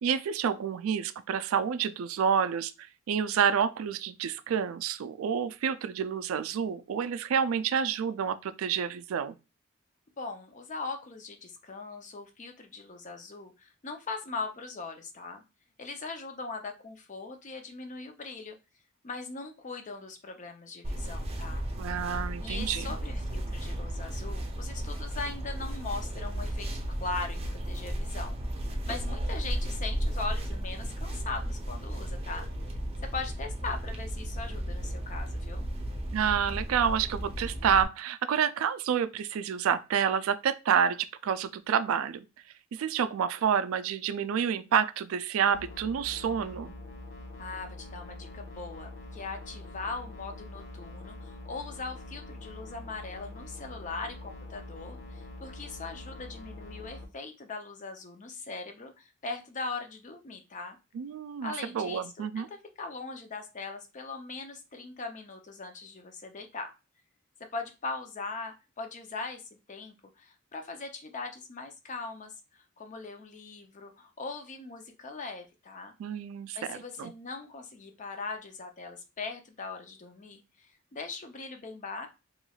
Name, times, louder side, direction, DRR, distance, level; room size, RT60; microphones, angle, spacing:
voice 1, 0.0-2.7 3.1-9.4 21.8-22.9 36.1-42.2 42.7-46.7 60.9-62.5 76.0-77.1, right 7 dB, 85° right, 0.3 m, -29 dB
voice 2, 10.2-15.4 15.8-18.6 19.0-21.6 22.4-26.7 27.0-28.4 28.9-32.5 33.1-35.6 47.4-60.8 61.4-66.7 67.5-75.9 76.5-82.1, left 3 dB, 40° left, 0.6 m, -40 dB
sound 1, 20.8-37.8, equal, 30° right, 0.6 m, -34 dB
sound 2, 45.5-57.0, left 2 dB, 70° left, 1.0 m, -44 dB
3.1 x 3.0 x 2.3 m
head